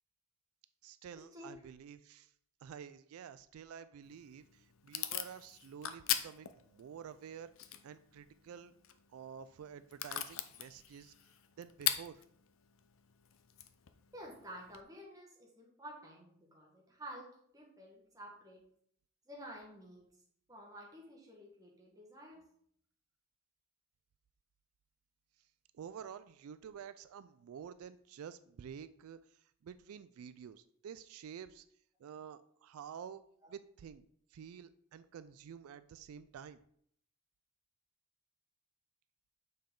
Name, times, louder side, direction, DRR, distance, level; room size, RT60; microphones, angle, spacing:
voice 1, 0.8-2.3 2.6-7.5 7.8-8.7 9.1-11.1 11.6-12.2 25.7-31.7 32.0-33.2 33.5-34.0 34.3-36.6, right 7 dB, 90° right, 14 dB, 0.3 m, -50 dB
Packing tape duct tape / Tearing, 4.0-14.8, left 11 dB, 70° left, 0.5 m, -42 dB
voice 2, 14.1-17.3 17.5-18.6 19.2-20.1 20.5-22.4 33.4-33.5, equal, 15° right, -2 dB, 1.7 m, -51 dB
6.7 x 5.4 x 3.8 m, 0.67 s
head